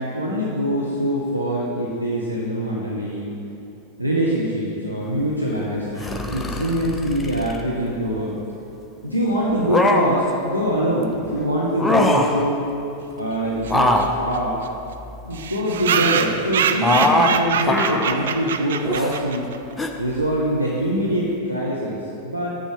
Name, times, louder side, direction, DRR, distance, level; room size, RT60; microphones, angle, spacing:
voice 1, 0.0-3.3 4.0-8.4 9.0-12.7 13.2-14.6 15.2-19.5 20.0-22.5, equal, 90° right, -5 dB, 0.9 m, -24 dB
sound 1, 6.0-7.7 9.5-10.3 11.7-12.5 13.6-15.4 16.8-17.4 17.6-18.2 18.8-19.2 19.8-19.9, left 1 dB, 10° left, 0.6 m, -22 dB
sound 2, 13.6-13.7 14.0-14.1 14.3-14.4 14.6-14.7 15.3-19.6, right 7 dB, 60° right, 0.4 m, -24 dB
7.1 x 7.0 x 5.3 m, 2.8 s
figure-of-eight pair, 90°, 0 cm